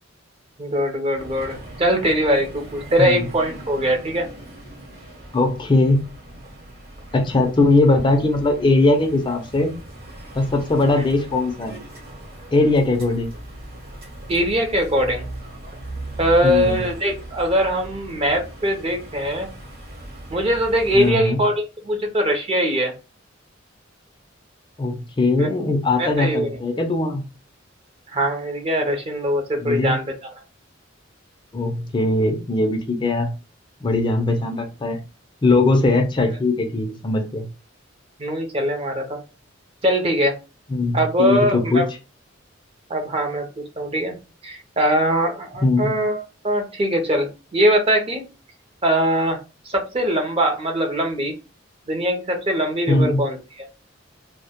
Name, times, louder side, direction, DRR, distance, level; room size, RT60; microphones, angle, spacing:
voice 1, 0.6-4.3 14.3-15.2 16.2-19.5 20.3-22.9 25.4-25.5 26.0-26.6 28.1-30.3 35.8-35.9 38.2-39.2 39.8-40.3 40.9-41.8 42.9-43.5 43.8-44.2 44.4-48.2 48.8-49.4 49.7-51.3 51.9-53.4, equal, 30° right, 3 dB, 0.5 m, -21 dB
sound 1, 1.1-21.1, right 1 dB, 50° right, 0.9 m, -38 dB
voice 2, 5.3-6.0 7.1-9.8 10.3-11.8 12.5-13.3 16.4-16.8 20.9-21.4 24.8-27.2 29.6-30.0 31.5-33.3 33.8-35.0 35.4-37.5 40.7-41.8 45.6-45.9 52.9-53.2, left 2 dB, 25° left, 3 dB, 0.4 m, -20 dB
2.1 x 2.1 x 2.8 m, 0.30 s
head